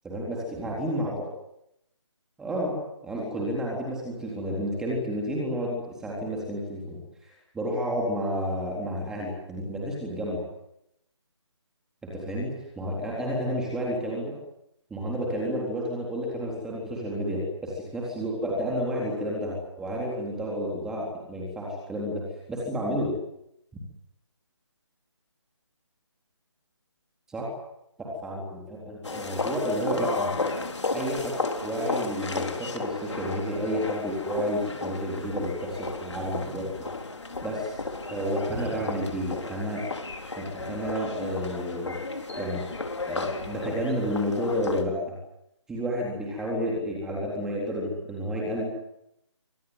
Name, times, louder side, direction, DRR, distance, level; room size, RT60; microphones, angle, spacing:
voice 1, 0.0-1.3 2.4-2.8 3.0-10.4 12.0-14.3 14.9-22.2 22.5-23.1 27.3-27.5 28.0-30.6 30.9-31.3 31.6-36.7 37.4-37.8 38.1-39.9 40.4-41.9 42.4-45.1 45.7-48.6, equal, 5° right, -3 dB, 3.8 m, -31 dB
sound 1, 29.0-44.8, left 3 dB, 70° left, 3.9 m, -34 dB
25.5 x 19.0 x 9.6 m, 0.80 s
figure-of-eight pair, 165°, 15 cm